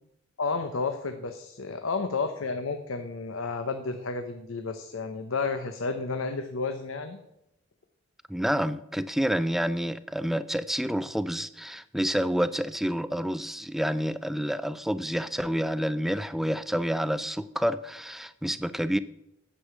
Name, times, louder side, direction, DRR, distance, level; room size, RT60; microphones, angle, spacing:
voice 1, 0.4-7.2, left 4 dB, 90° left, 7 dB, 0.8 m, -31 dB
voice 2, 8.3-19.0, equal, ahead, 14 dB, 0.3 m, -28 dB
9.9 x 7.7 x 6.1 m, 0.88 s
head